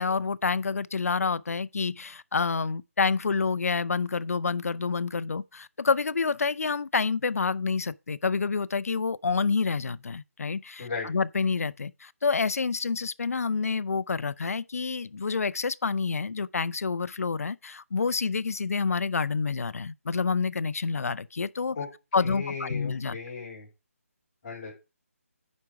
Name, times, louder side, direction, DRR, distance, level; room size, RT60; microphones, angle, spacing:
voice 1, 0.0-21.8 22.1-23.2, left 5 dB, 70° left, 0.5 m, -28 dB
voice 2, 10.8-11.1 21.7-21.9 22.2-23.7 24.4-24.7, left 5 dB, 25° left, 3.3 m, -36 dB
9.7 x 5.2 x 4.7 m
hypercardioid pair, 170°, 8 cm